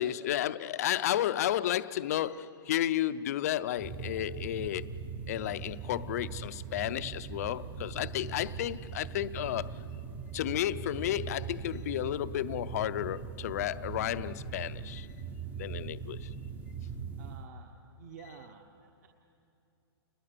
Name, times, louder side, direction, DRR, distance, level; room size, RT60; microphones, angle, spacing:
voice 1, 0.0-4.9 5.3-9.8 10.3-15.1 15.6-16.3, left 12 dB, 40° left, 0.6 m, -32 dB
sound 1, 3.8-17.5, right 6 dB, 10° right, 0.7 m, -41 dB
voice 2, 17.2-19.1, right 6 dB, 40° right, 1.3 m, -51 dB
30.0 x 21.0 x 6.7 m
hypercardioid pair, 170°, 13 cm